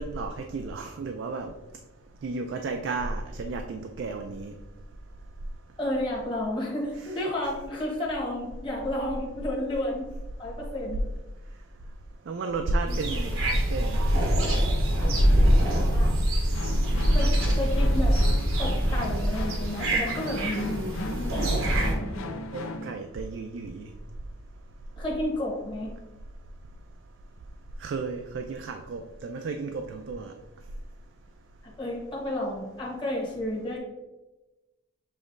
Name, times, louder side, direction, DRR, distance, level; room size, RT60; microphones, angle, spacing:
voice 1, 0.0-1.5 2.2-4.5 7.0-7.2 12.3-13.4 13.7-14.0 16.9-17.4 22.5-23.9 27.8-30.3, right 3 dB, 60° right, 5 dB, 0.3 m, -33 dB
voice 2, 5.8-10.1 10.4-11.1 12.9-13.1 15.5-16.2 17.1-18.1 18.6-21.6 21.9-22.3 25.0-25.9 31.6-33.8, left 1 dB, 25° left, -5 dB, 0.9 m, -32 dB
sound 1, 12.9-21.9, equal, 85° right, 1.0 m, -24 dB
sound 2, 16.5-22.9, left 2 dB, 80° left, 0.5 m, -37 dB
6.8 x 3.0 x 2.5 m, 1.1 s
head